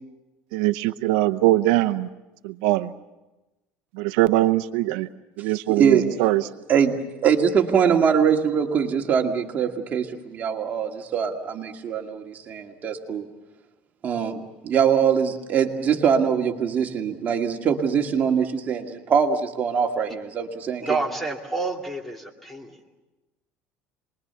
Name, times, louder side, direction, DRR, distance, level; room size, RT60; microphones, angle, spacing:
voice 1, 0.5-2.1 2.4-2.9 4.0-5.1 5.4-6.4, right 17 dB, 85° right, 9 dB, 0.7 m, -21 dB
voice 2, 6.7-13.3 14.0-21.0, right 7 dB, 35° right, 2 dB, 2.1 m, -23 dB
voice 3, 20.8-22.8, right 3 dB, 5° left, 2 dB, 2.6 m, -29 dB
27.5 x 21.5 x 7.0 m, 1.1 s
cardioid pair, 135°, 5 cm